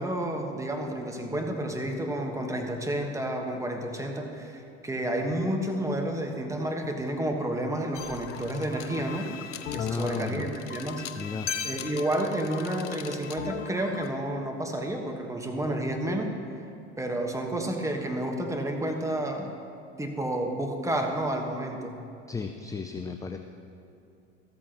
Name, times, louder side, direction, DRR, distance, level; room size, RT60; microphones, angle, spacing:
voice 1, 0.0-9.3 9.7-11.1 11.6-16.3 17.0-19.5 20.0-22.0, right 1 dB, 10° right, 3 dB, 1.3 m, -30 dB
sound 1, 7.9-14.1, left 8 dB, 80° left, 0.6 m, -38 dB
voice 2, 9.8-10.5 11.1-11.5 22.3-23.4, left 5 dB, 10° left, 6 dB, 0.4 m, -34 dB
13.5 x 13.5 x 3.0 m, 2.5 s
hypercardioid pair, 80°, 35 cm